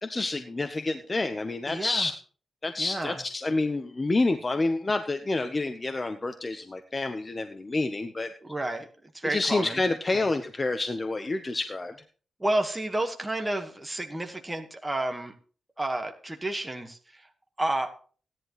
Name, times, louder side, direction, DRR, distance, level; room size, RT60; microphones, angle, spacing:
voice 1, 0.0-2.1 2.6-8.3 9.2-12.0, left 2 dB, 25° left, 8 dB, 0.8 m, -28 dB
voice 2, 1.7-2.1 2.8-3.2 8.4-8.9 9.1-9.8 10.1-10.2 12.4-15.3 15.8-17.3 17.6-17.9, right 1 dB, 10° right, 4 dB, 1.4 m, -30 dB
16.5 x 10.5 x 3.1 m, 0.39 s
wide cardioid pair, 125°, 0 cm